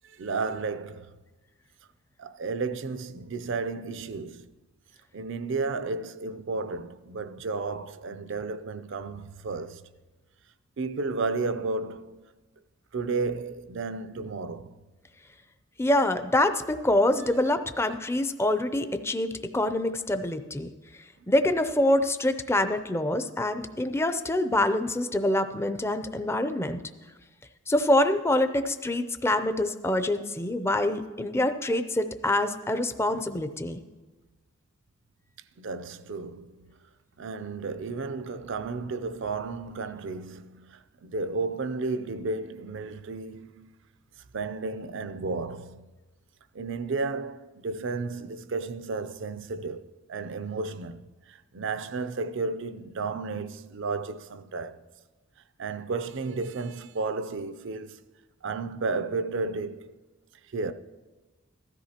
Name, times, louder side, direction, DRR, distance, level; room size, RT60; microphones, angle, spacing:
voice 1, 0.0-1.1 2.2-4.5 5.1-9.8 10.8-12.3 12.9-14.8 35.6-36.7 37.2-43.7 44.3-45.9 46.5-51.0 51.3-54.8 55.6-58.0 58.4-60.0 60.5-60.7, right 3 dB, 60° right, 0.5 m, -33 dB
voice 2, 15.8-20.7 21.3-26.8 27.7-33.8, left 1 dB, 10° left, 0.5 m, -25 dB
15.5 x 13.5 x 2.9 m
head